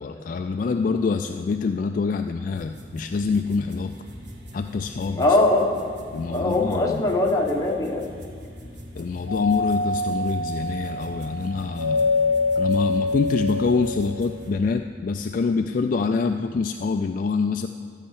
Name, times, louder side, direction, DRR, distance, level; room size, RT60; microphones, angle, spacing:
voice 1, 0.0-4.0 4.5-5.4 6.1-7.2 8.9-12.1 12.6-17.7, left 4 dB, 45° left, 6 dB, 0.3 m, -25 dB
sound 1, 2.5-14.5, equal, 70° right, 1.6 m, -42 dB
voice 2, 5.2-5.9 6.3-8.1, left 2 dB, 20° left, -1 dB, 1.2 m, -21 dB
Doorbell, 9.3-14.1, left 3 dB, 85° right, 1.7 m, -25 dB
13.0 x 5.6 x 8.1 m, 2.1 s
head